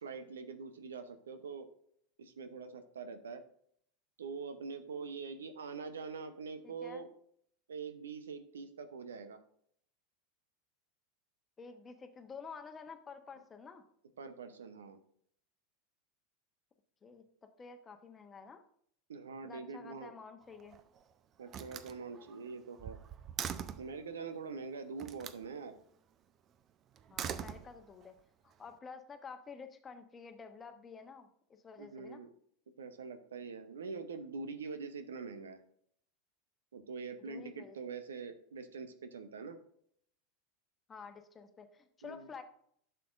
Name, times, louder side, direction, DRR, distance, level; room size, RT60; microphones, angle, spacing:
voice 1, 0.0-1.7 2.2-3.4 4.2-7.1 7.7-9.4 14.2-15.0 19.1-20.1 21.4-23.0 23.8-25.8 31.8-32.3 32.8-35.6 36.7-39.6 42.0-42.3, right 5 dB, 80° right, 10 dB, 0.8 m, -44 dB
voice 2, 6.6-7.0 11.6-13.8 17.0-17.2 17.6-18.6 19.4-20.8 27.1-28.2 28.4-32.2 37.2-37.8 40.9-42.4, left 5 dB, 25° left, 7 dB, 1.0 m, -50 dB
Slam, 20.4-21.0 21.5-24.0 25.0-25.5 27.0-28.1, right 8 dB, 40° right, 0.6 m, -42 dB
11.5 x 6.7 x 2.5 m, 0.66 s
hypercardioid pair, 85°, 0 cm